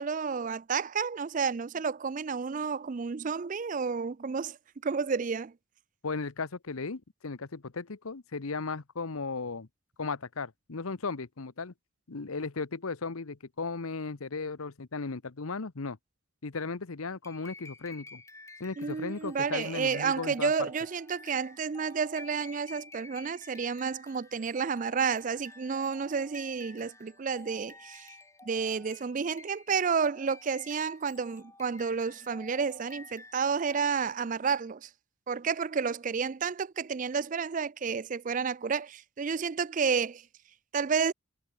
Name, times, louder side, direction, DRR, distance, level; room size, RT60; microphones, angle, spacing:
voice 1, 0.0-4.6 4.8-5.5 18.8-28.1 28.5-34.9 35.3-40.2 40.7-41.1, right 5 dB, 35° right, 0.4 m, -31 dB
voice 2, 6.0-9.7 10.0-11.7 12.1-16.0 16.4-18.2 18.6-20.5, left 4 dB, 80° left, 1.0 m, -36 dB
sound 1, 17.2-34.3, left 3 dB, 15° left, 4.5 m, -52 dB
head